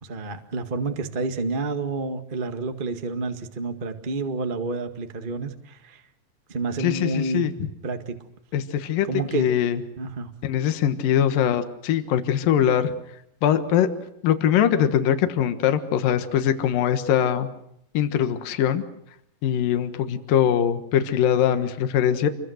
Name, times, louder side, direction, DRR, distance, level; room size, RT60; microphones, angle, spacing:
voice 1, 0.0-6.0 6.5-7.5 7.8-8.2 9.1-9.5 10.0-10.3, right 3 dB, 30° right, 6 dB, 1.0 m, -29 dB
voice 2, 6.8-7.5 8.5-9.1 9.3-9.8 10.4-12.9 13.4-13.9 14.2-17.5 17.9-18.8 19.4-22.3, left 9 dB, 75° left, 9 dB, 3.1 m, -22 dB
28.0 x 23.0 x 6.5 m, 0.76 s
omnidirectional pair, 4.0 m